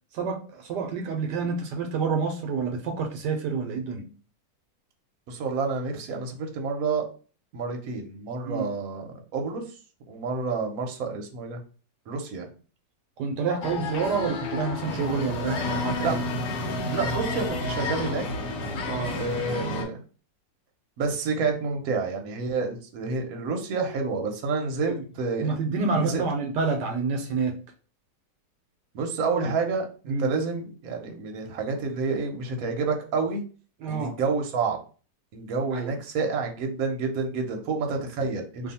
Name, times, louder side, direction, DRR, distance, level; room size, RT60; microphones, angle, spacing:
voice 1, 0.1-4.1 8.4-8.7 13.2-16.2 18.8-19.2 24.9-25.0 25.4-27.6 30.1-30.3 33.8-34.2 35.7-36.0 38.6-38.7, right 4 dB, 80° right, 1.2 m, -28 dB
voice 2, 5.3-7.1 7.5-9.6 10.1-11.6 12.1-12.5 16.0-16.2 16.9-18.2 19.2-20.0 21.0-25.5 26.0-26.2 28.9-33.4 33.9-34.8 35.3-38.7, right 4 dB, 60° right, 1.1 m, -29 dB
sound 1, 13.6-19.8, left 2 dB, 65° left, 1.1 m, -30 dB
2.7 x 2.6 x 4.1 m
omnidirectional pair, 1.9 m